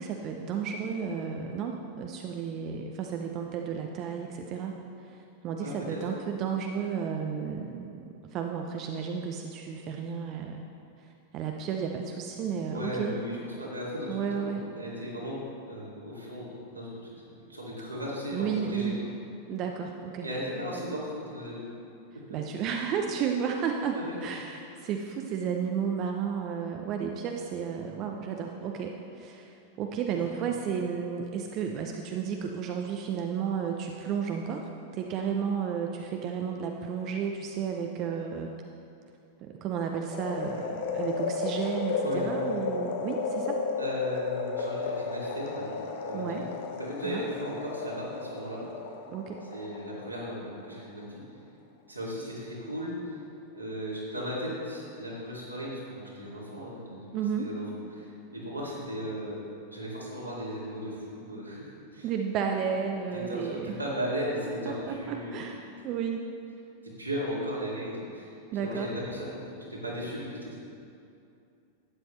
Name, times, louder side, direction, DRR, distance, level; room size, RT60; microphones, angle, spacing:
voice 1, 0.0-8.0 8.3-10.6 11.3-13.2 14.1-14.7 18.3-19.0 19.5-20.3 22.3-38.5 39.5-43.6 46.1-46.4 47.0-47.2 49.1-49.4 57.1-57.5 62.0-63.8 64.4-66.3 68.5-68.9, right 7 dB, 35° right, 3 dB, 0.6 m, -32 dB
voice 2, 5.6-6.0 12.7-16.5 16.7-17.0 17.4-18.9 20.2-21.7 23.9-24.2 41.1-41.2 42.0-42.6 43.8-46.5 46.7-48.6 49.5-51.2 51.9-53.0 53.5-57.6 57.9-62.1 63.1-65.5 66.8-70.6, equal, 85° right, -6 dB, 2.6 m, -36 dB
sound 1, 40.1-50.4 50.8-50.9, left 4 dB, 55° left, 0.9 m, -33 dB
12.0 x 9.5 x 3.2 m, 2.6 s
figure-of-eight pair, 90°, 0 cm